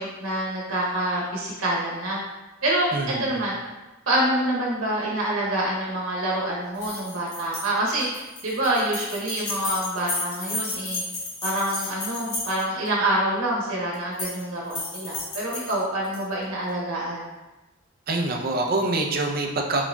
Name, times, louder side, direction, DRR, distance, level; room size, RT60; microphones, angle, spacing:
voice 1, 0.0-2.2 2.6-2.9 3.2-3.6 4.1-11.0 11.4-17.2, right 1 dB, 80° right, -4 dB, 1.0 m, -26 dB
voice 2, 2.9-3.4 18.1-19.8, right 2 dB, 45° right, 2 dB, 0.5 m, -25 dB
sound 1, 6.7-12.9 13.9-14.4 14.7-16.2, left 2 dB, 55° left, 1.3 m, -33 dB
4.8 x 4.0 x 2.2 m, 1.1 s
head